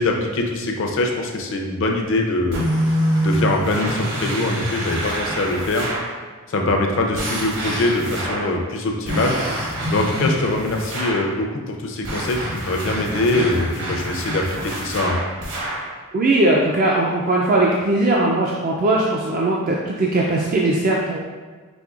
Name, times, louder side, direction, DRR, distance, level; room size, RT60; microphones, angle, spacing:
voice 1, 0.0-5.9 6.5-15.2, left 2 dB, 55° left, 2 dB, 0.5 m, -23 dB
sound 1, 2.5-6.2 7.1-8.6 9.0-11.3 12.0-15.9, right 1 dB, 55° right, 0.9 m, -26 dB
voice 2, 16.1-21.2, right 2 dB, 40° right, -3 dB, 0.3 m, -19 dB
5.2 x 3.2 x 2.4 m, 1.4 s
head